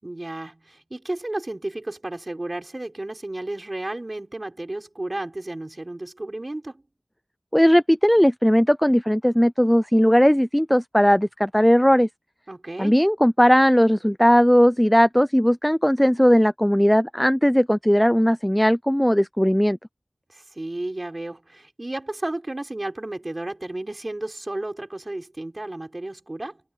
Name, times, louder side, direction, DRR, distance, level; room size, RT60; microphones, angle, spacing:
voice 1, 0.0-6.8 12.5-13.0 20.3-26.6, right 2 dB, 40° right, 6.0 m, -33 dB
voice 2, 7.5-12.1 12.8-19.8, equal, 5° left, 0.4 m, -18 dB
wide cardioid pair, 55°, 0 cm